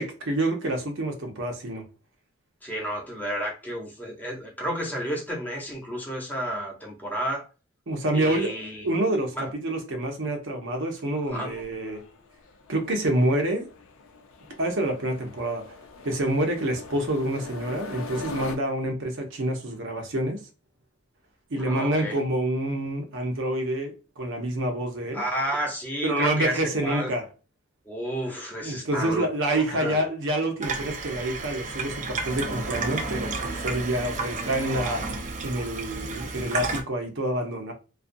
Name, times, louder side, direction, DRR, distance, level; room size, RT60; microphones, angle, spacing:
voice 1, 0.0-1.8 7.9-8.5 8.8-12.0 12.7-13.7 14.6-15.6 16.0-20.4 21.5-25.2 26.0-27.3 28.6-37.7, right 1 dB, 65° right, 0.7 m, -27 dB
voice 2, 2.6-7.4 8.1-8.9 9.4-9.5 11.3-11.6 21.6-22.2 25.1-27.1 27.9-29.3 29.7-30.0, equal, 10° left, 0.8 m, -31 dB
sound 1, 11.3-18.6, left 4 dB, 70° left, 0.4 m, -42 dB
Water tap faucet / Sink (filling or washing), 30.6-36.8, right 3 dB, 35° right, 0.5 m, -32 dB
2.4 x 2.4 x 2.6 m
head